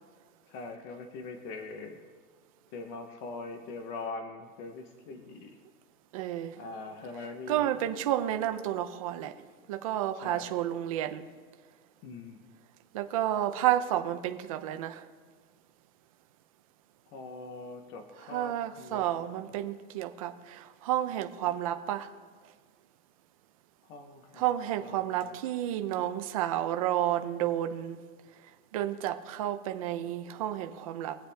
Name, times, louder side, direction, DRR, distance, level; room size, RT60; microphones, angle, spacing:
voice 1, 0.5-2.0 2.7-5.6 6.6-7.8 10.1-10.5 12.0-12.4 17.1-19.4 23.9-24.4 24.8-25.3, left 3 dB, 25° left, 0.8 m, -42 dB
voice 2, 6.1-6.6 7.5-9.3 9.7-11.3 12.9-15.1 18.3-22.1 24.3-28.0 28.7-31.2, right 12 dB, 25° right, 0.5 m, -31 dB
22.5 x 8.0 x 3.4 m
supercardioid pair, 175°, 42 cm